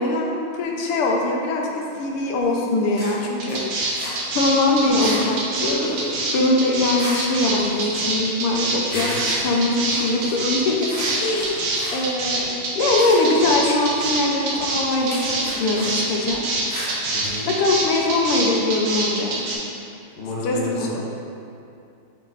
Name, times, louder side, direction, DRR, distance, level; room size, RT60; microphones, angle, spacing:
voice 1, 0.0-3.8 4.3-6.0 6.3-10.9 11.2-12.5 12.8-16.4 17.5-19.4 20.4-21.1, left 2 dB, 85° left, -1 dB, 1.7 m, -22 dB
sound 1, 2.3-2.6 2.8-4.2 4.7-5.4 5.6-6.1 6.6-7.3 7.5-8.6 8.8-12.0 12.3-12.5 12.9-13.2 13.5-16.0 16.3-17.5, equal, 20° left, 1.5 m, -35 dB
sound 2, 3.4-19.5, right 3 dB, 85° right, 1.8 m, -25 dB
sound 3, 4.9-7.9, right 1 dB, 45° left, 1.2 m, -37 dB
voice 2, 8.9-9.2 17.1-17.5 20.2-21.0, left 2 dB, 70° left, -6 dB, 1.9 m, -31 dB
7.0 x 3.7 x 3.9 m, 2.6 s
omnidirectional pair, 2.4 m